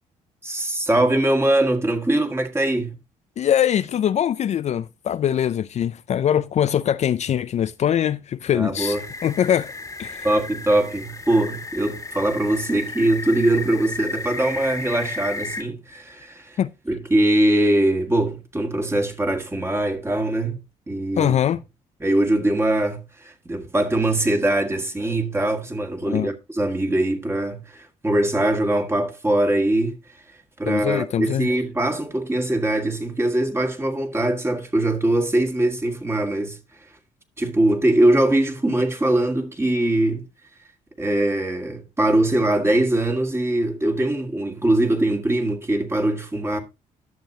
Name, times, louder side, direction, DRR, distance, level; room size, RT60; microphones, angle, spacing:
voice 1, 0.4-2.9 8.5-9.1 10.2-16.6 16.9-20.6 20.9-21.4 22.0-30.0 30.6-36.6 37.4-40.2 41.0-46.6, right 1 dB, 15° right, 1.9 m, -22 dB
voice 2, 3.4-9.0 9.2-9.7 10.0-10.3 16.6-16.7 21.2-21.6 26.1-26.3 30.7-31.5, left 10 dB, 50° left, 0.4 m, -22 dB
sound 1, 8.8-15.6, left 3 dB, 20° left, 1.6 m, -33 dB
12.0 x 6.7 x 2.8 m
supercardioid pair, 70°, 15 cm